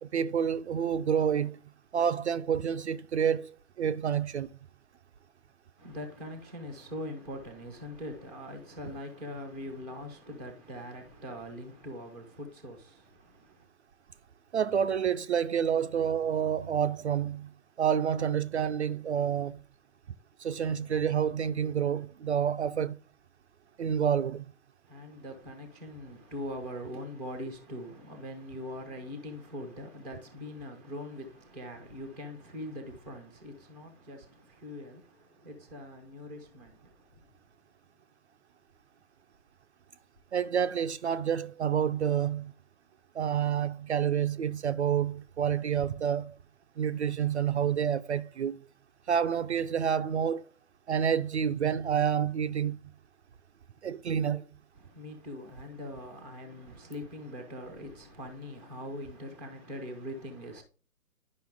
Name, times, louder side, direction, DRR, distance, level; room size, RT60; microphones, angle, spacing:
voice 1, 0.0-1.6 1.9-4.5 14.5-17.5 17.8-19.6 20.4-23.0 23.8-24.5 40.3-42.5 43.1-46.3 46.8-48.7 49.1-50.4 50.9-52.8 53.8-54.4, right 8 dB, 50° right, 0.5 m, -28 dB
voice 2, 5.8-13.7 24.8-37.3 54.7-60.6, left 1 dB, 5° left, 0.5 m, -42 dB
10.5 x 5.5 x 3.5 m
figure-of-eight pair, 140°, 44 cm